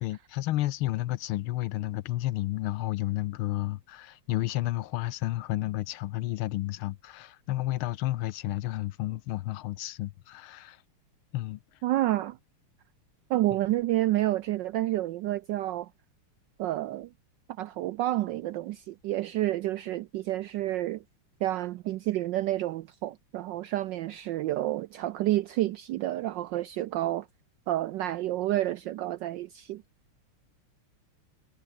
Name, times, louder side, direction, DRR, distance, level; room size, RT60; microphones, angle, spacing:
voice 1, 0.0-10.8 11.3-11.6, left 15 dB, 75° left, 1.5 m, -31 dB
voice 2, 11.8-12.4 13.3-15.9 16.6-17.1 17.6-21.0 21.4-27.3 27.7-29.8, right 15 dB, 80° right, 1.0 m, -29 dB
omnidirectional pair, 2.4 m